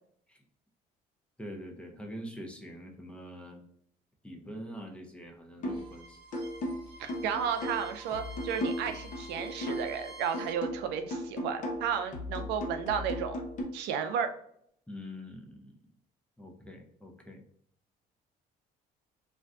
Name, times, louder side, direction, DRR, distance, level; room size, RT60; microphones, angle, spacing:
voice 1, 1.4-3.6 4.2-6.2 14.9-15.8 16.4-17.4, equal, 5° left, 2 dB, 0.5 m, -44 dB
sound 1, 5.6-5.9 6.3-10.0 10.3-13.6, left 1 dB, 50° left, 0.7 m, -36 dB
Bowed string instrument, 5.6-10.6, right 1 dB, 30° right, 1.0 m, -50 dB
voice 2, 7.0-13.4 13.7-14.3, right 7 dB, 85° right, 7 dB, 0.4 m, -33 dB
2.5 x 2.2 x 3.5 m, 0.67 s
cardioid pair, 110°, 17 cm